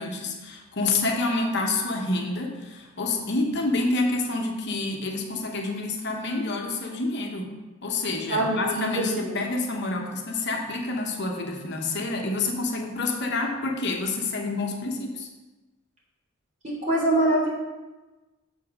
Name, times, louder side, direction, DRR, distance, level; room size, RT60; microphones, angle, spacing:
voice 1, 0.0-7.5 7.8-15.3, left 2 dB, 55° left, 2 dB, 1.1 m, -28 dB
voice 2, 8.3-9.3 16.6-17.5, right 1 dB, 35° right, -5 dB, 3.3 m, -24 dB
7.3 x 5.6 x 6.1 m, 1.1 s
head